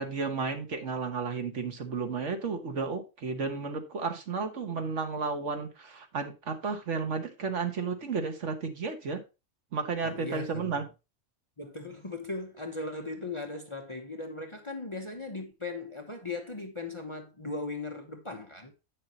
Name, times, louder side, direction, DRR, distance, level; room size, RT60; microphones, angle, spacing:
voice 1, 0.0-9.2 9.7-10.8, right 4 dB, 60° right, 1.5 m, -33 dB
voice 2, 10.0-10.7 11.6-18.7, left 3 dB, 25° left, 0.8 m, -38 dB
8.8 x 6.7 x 2.9 m
omnidirectional pair, 1.4 m